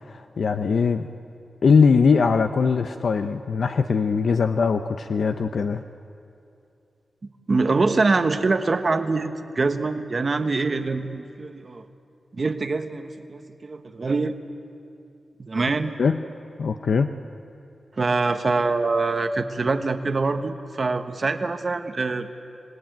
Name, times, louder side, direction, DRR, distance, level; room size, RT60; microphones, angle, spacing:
voice 1, 0.1-1.1 1.6-5.8 16.0-16.2 16.6-17.1, left 5 dB, 65° left, 7 dB, 0.7 m, -21 dB
voice 2, 7.5-11.9 12.3-14.4 15.4-15.9 18.0-22.3, right 3 dB, 35° right, 8 dB, 1.1 m, -24 dB
26.5 x 19.5 x 9.2 m, 2.5 s
wide cardioid pair, 165°, 0 cm